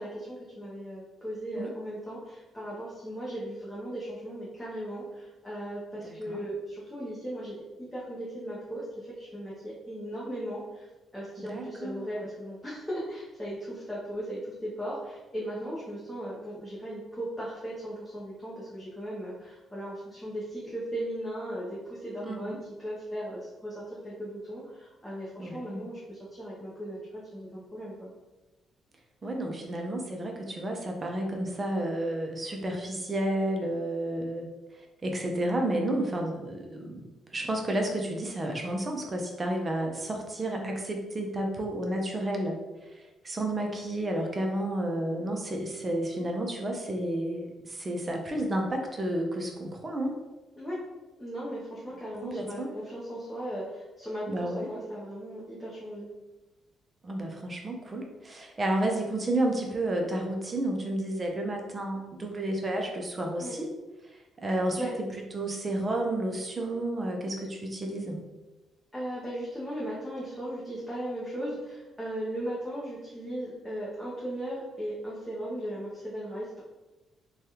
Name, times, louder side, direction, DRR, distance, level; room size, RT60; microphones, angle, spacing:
voice 1, 0.0-10.9 11.1-28.1 50.6-50.8 51.2-56.1 63.4-63.6 64.8-64.9 68.9-76.6, equal, 10° left, -8 dB, 0.8 m, -37 dB
voice 2, 6.0-6.4 11.4-12.2 22.2-22.6 25.4-25.8 29.2-34.5 35.0-37.1 37.3-42.6 42.9-50.2 52.2-52.7 54.3-54.7 57.0-63.7 64.1-65.1 65.3-68.2, right 1 dB, 30° right, 2 dB, 0.6 m, -31 dB
3.2 x 2.3 x 2.8 m, 1.1 s
cardioid pair, 90°, 0 cm